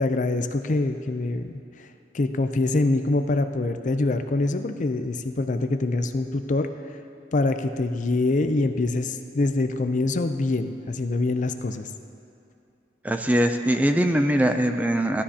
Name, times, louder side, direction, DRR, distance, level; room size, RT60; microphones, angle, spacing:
voice 1, 0.0-1.6 2.1-6.7 7.3-11.9, left 2 dB, 45° left, 8 dB, 0.5 m, -24 dB
voice 2, 13.0-15.2, right 1 dB, 10° right, 6 dB, 0.4 m, -22 dB
17.0 x 12.0 x 2.8 m, 2.6 s
head